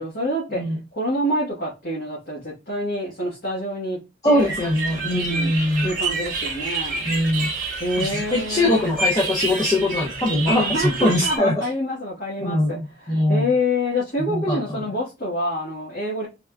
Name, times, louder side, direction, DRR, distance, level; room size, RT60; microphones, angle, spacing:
voice 1, 0.0-0.6 0.9-4.0 4.2-4.5 5.1-7.0 7.8-8.9 10.5-16.3, left 1 dB, 60° left, 1.1 m, -27 dB
voice 2, 4.2-5.9 7.0-7.5 8.0-11.6 12.4-13.5 14.2-14.6, left 1 dB, 20° left, 0.5 m, -22 dB
sound 1, 4.4-11.4, right 3 dB, 50° right, 0.8 m, -28 dB
3.4 x 2.2 x 2.2 m
head